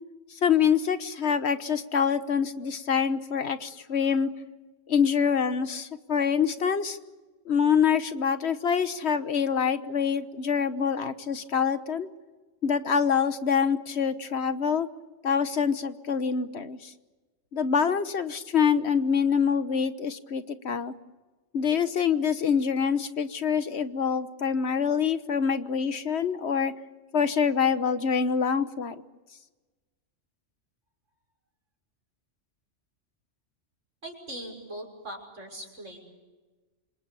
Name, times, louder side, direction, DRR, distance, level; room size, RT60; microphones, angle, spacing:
voice 1, 0.3-4.3 4.9-7.0 7.4-12.1 12.6-14.9 15.2-16.9 17.5-20.9 21.5-26.7 27.1-28.9, left 7 dB, 60° left, 11 dB, 1.4 m, -25 dB
voice 2, 34.0-36.0, right 1 dB, 90° right, 2 dB, 6.6 m, -40 dB
28.5 x 26.5 x 6.9 m, 1.2 s
omnidirectional pair, 1.3 m